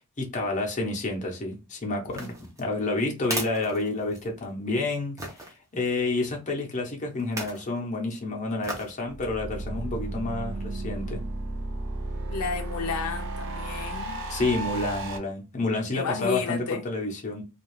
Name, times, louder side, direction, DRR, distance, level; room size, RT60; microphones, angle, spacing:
voice 1, 0.2-11.2 14.3-17.4, left 2 dB, 35° left, 0.7 m, -29 dB
sound 1, 2.0-4.5 5.2-5.5 7.2-7.7 8.6-9.0 9.5-9.6, right 1 dB, 15° right, 0.6 m, -36 dB
sound 2, 9.0-15.2, right 2 dB, 55° right, 0.5 m, -33 dB
voice 2, 12.3-14.2 15.9-16.8, left 5 dB, 75° left, 0.5 m, -31 dB
2.4 x 2.3 x 3.1 m
head